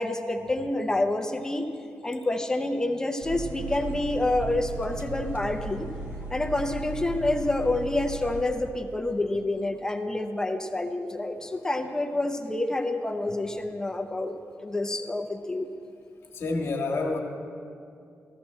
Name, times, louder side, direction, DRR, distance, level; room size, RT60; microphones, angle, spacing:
voice 1, 0.0-1.7 2.0-5.9 6.3-15.7, left 2 dB, 10° left, 6 dB, 0.5 m, -28 dB
sound 1, 3.2-8.4, right 2 dB, 45° right, 1.1 m, -36 dB
voice 2, 16.3-17.2, left 3 dB, 55° left, 1 dB, 1.5 m, -28 dB
15.0 x 14.0 x 4.3 m, 2.5 s
wide cardioid pair, 180°, 5 cm